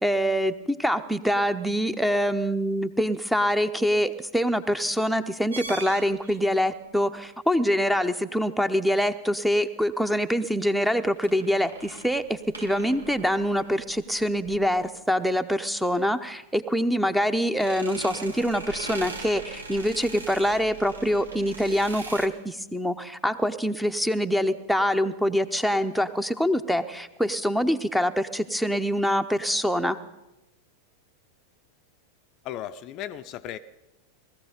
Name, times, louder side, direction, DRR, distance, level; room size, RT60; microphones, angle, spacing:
voice 1, 0.0-30.0, equal, ahead, 12 dB, 0.7 m, -25 dB
sound 1, 5.5-6.4 11.0-14.8 17.5-22.3, right 3 dB, 75° right, 1.3 m, -41 dB
voice 2, 32.4-33.6, left 11 dB, 40° left, 10 dB, 0.5 m, -36 dB
19.5 x 14.5 x 5.1 m, 0.96 s
figure-of-eight pair, 90°, 0 cm